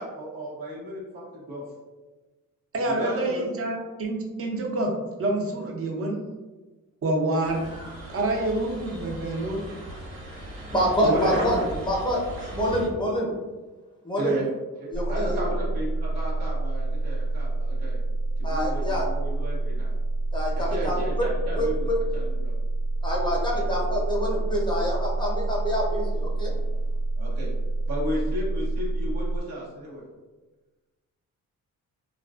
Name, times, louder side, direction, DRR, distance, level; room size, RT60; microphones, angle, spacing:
voice 1, 0.0-1.6 2.8-3.4 10.7-11.4 14.2-14.5 14.8-18.0 18.5-19.9 20.7-22.5 23.5-23.8 27.2-27.5 27.9-30.0, equal, 80° right, -5 dB, 0.9 m, -34 dB
voice 2, 2.7-4.9 5.2-6.2 7.0-7.6 8.1-9.6 11.0-11.7, right 1 dB, 40° right, 0 dB, 0.6 m, -27 dB
sound 1, 7.4-12.9, right 1 dB, 65° right, 1.4 m, -37 dB
voice 3, 10.3-11.6 11.8-12.2 12.5-13.3 14.0-14.3 14.9-15.4 18.4-19.1 20.3-21.3 21.6-21.9 23.0-26.5, equal, 15° left, -3 dB, 0.7 m, -27 dB
sound 2, 14.9-29.4, right 2 dB, 55° left, 0.5 m, -28 dB
2.3 x 2.3 x 2.3 m, 1.2 s
cardioid pair, 65°, 36 cm